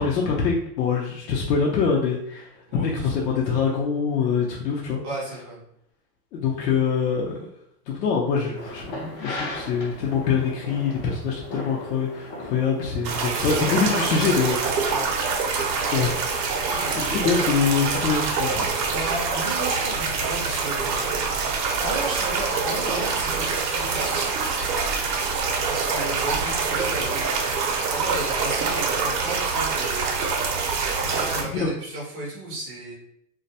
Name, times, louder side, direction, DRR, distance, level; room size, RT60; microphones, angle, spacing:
voice 1, 0.0-5.0 6.3-7.3 7.9-14.9 15.9-16.6 16.9-18.7, left 5 dB, 80° left, -3 dB, 0.7 m, -24 dB
voice 2, 2.7-3.1 5.0-5.6 14.9-15.1 16.7-17.0 17.9-18.1 18.9-21.1 21.8-24.3 25.7-27.4 27.9-30.1 31.0-32.9, right 1 dB, 20° right, -4 dB, 0.4 m, -33 dB
sound 1, 8.5-21.7, left 1 dB, 40° left, 0.6 m, -38 dB
sound 2, 13.0-31.4, right 5 dB, 85° right, 0.7 m, -25 dB
2.2 x 2.1 x 2.7 m, 0.74 s
supercardioid pair, 155°, 48 cm